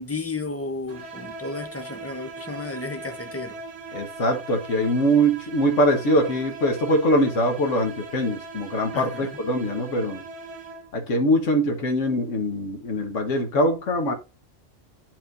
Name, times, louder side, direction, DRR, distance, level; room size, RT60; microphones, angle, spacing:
voice 1, 0.0-3.6 8.9-9.3, left 3 dB, 15° left, 0.5 m, -33 dB
sound 1, 0.9-11.1, right 3 dB, 75° right, 1.5 m, -40 dB
voice 2, 3.9-10.2 10.9-14.1, equal, 80° left, 1.5 m, -23 dB
10.0 x 4.5 x 2.6 m
omnidirectional pair, 1.3 m